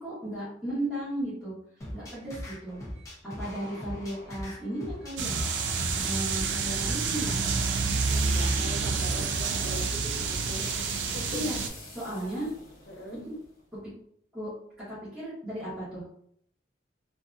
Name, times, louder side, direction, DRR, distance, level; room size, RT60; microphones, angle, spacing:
voice 1, 0.0-1.5 1.9-2.8 3.2-5.4 6.0-7.4 11.3-11.6 11.9-12.5 13.1-13.3 14.3-14.5 14.8-16.1, right 1 dB, 5° right, -13 dB, 0.9 m, -35 dB
sound 1, 1.8-9.8, equal, 20° left, 0.6 m, -41 dB
sound 2, 5.2-11.7, right 4 dB, 90° right, 0.3 m, -28 dB
sound 3, 7.0-13.6, left 1 dB, 50° left, 0.8 m, -46 dB
voice 2, 8.1-10.7 11.1-11.5 12.2-12.3 12.9-13.2, equal, 80° left, -2 dB, 0.8 m, -41 dB
2.7 x 2.5 x 2.3 m, 0.68 s
head